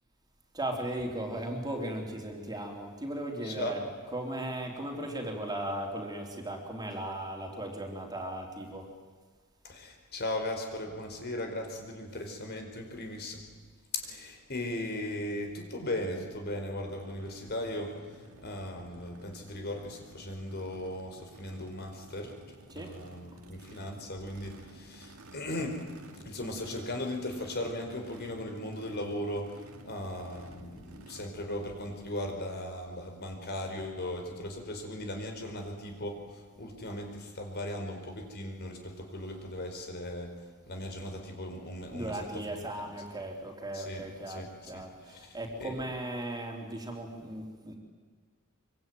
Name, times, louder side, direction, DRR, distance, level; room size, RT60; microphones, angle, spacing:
voice 1, 0.5-8.9 22.7-23.0 23.3-23.7 41.9-47.8, right 1 dB, 20° right, 2 dB, 3.8 m, -37 dB
voice 2, 3.4-3.8 9.6-13.4 13.9-25.8 26.2-29.5 29.8-40.3 40.7-42.2 43.7-44.8 45.1-45.8, left 1 dB, 50° left, 4 dB, 4.7 m, -38 dB
Race car auto racing / Idling / Accelerating revving vroom, 16.8-31.3, right 1 dB, 75° right, 2.6 m, -53 dB
25.5 x 24.5 x 9.4 m, 1.5 s
head